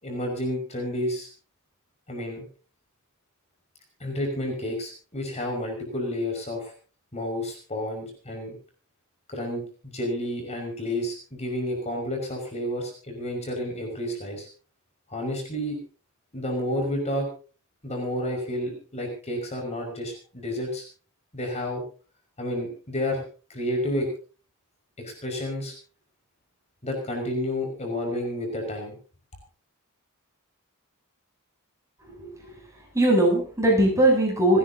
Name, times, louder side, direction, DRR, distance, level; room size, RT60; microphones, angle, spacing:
voice 1, 0.0-1.3 2.1-2.5 4.0-6.7 7.1-8.6 9.3-14.5 15.1-15.8 16.3-17.3 17.8-20.8 21.3-21.8 22.4-23.2 23.5-24.1 25.0-25.7 26.8-29.0, left 1 dB, 30° left, 2 dB, 5.5 m, -30 dB
voice 2, 32.1-32.5 32.9-34.6, right 1 dB, 15° right, 0 dB, 7.8 m, -20 dB
29.5 x 10.5 x 2.8 m, 0.37 s
head